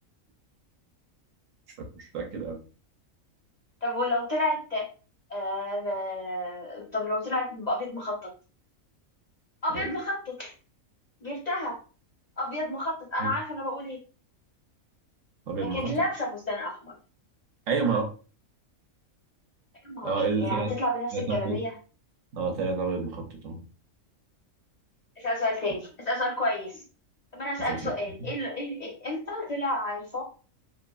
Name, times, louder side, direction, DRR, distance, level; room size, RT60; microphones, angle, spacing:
voice 1, 2.0-2.6 9.7-9.9 13.2-13.3 15.5-15.9 17.7-18.1 20.0-20.7 21.1-21.6 22.3-23.6 27.7-27.8 28.2-28.3, right 4 dB, 70° right, 2 dB, 1.0 m, -29 dB
voice 2, 3.8-4.8 5.3-8.3 9.6-10.5 11.2-11.8 12.4-14.0 15.6-16.9 19.8-21.8 25.2-26.8 27.3-30.2, left 1 dB, 50° left, -1 dB, 0.5 m, -30 dB
2.9 x 2.4 x 2.2 m, 0.36 s
omnidirectional pair, 1.5 m